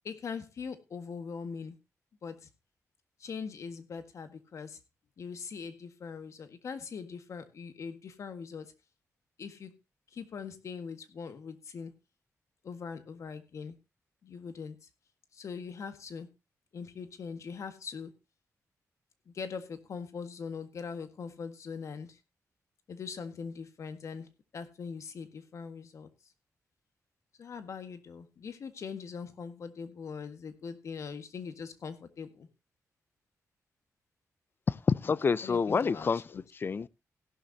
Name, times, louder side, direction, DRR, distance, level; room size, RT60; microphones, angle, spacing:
voice 1, 0.0-1.8 2.2-2.5 3.2-4.8 5.2-8.7 9.4-9.7 10.1-12.0 12.6-13.8 14.2-14.9 15.3-16.3 16.7-18.1 19.3-22.2 22.9-26.1 27.4-32.5 35.4-36.4, left 5 dB, 60° left, 1.7 m, -41 dB
voice 2, 34.7-36.2 36.5-36.9, left 5 dB, 40° left, 0.5 m, -27 dB
16.0 x 12.0 x 2.8 m
wide cardioid pair, 130°, 6 cm